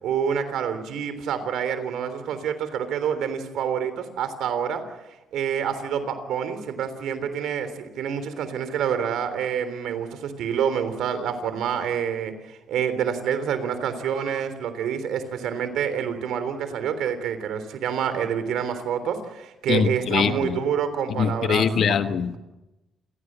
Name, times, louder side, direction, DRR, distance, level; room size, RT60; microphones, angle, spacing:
voice 1, 0.0-4.8 5.3-22.0, right 8 dB, 80° right, 11 dB, 3.4 m, -27 dB
voice 2, 19.7-20.6 21.2-22.4, left 6 dB, 60° left, 9 dB, 1.5 m, -23 dB
28.5 x 17.5 x 7.6 m, 1.0 s
cardioid pair, 90°, 0 cm